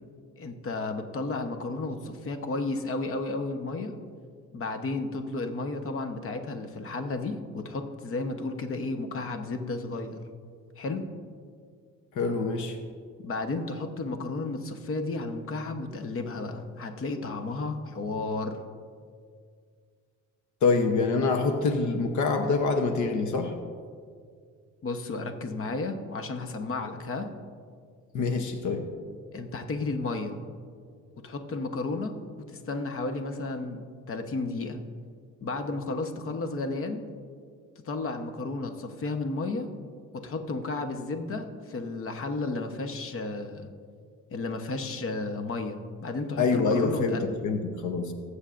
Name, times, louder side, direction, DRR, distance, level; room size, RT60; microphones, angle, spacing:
voice 1, 0.4-3.9 4.5-10.2 10.8-11.0 13.2-18.6 24.8-27.3 29.3-30.3 31.2-32.1 32.5-34.8 35.4-37.0 37.8-39.7 40.1-43.7 44.3-47.3, left 3 dB, 45° left, 6 dB, 1.0 m, -33 dB
voice 2, 12.1-12.8 20.6-23.5 28.1-28.9 46.4-48.1, left 4 dB, 75° left, 6 dB, 0.9 m, -25 dB
19.5 x 8.1 x 2.5 m, 2.1 s
cardioid pair, 90°, 30 cm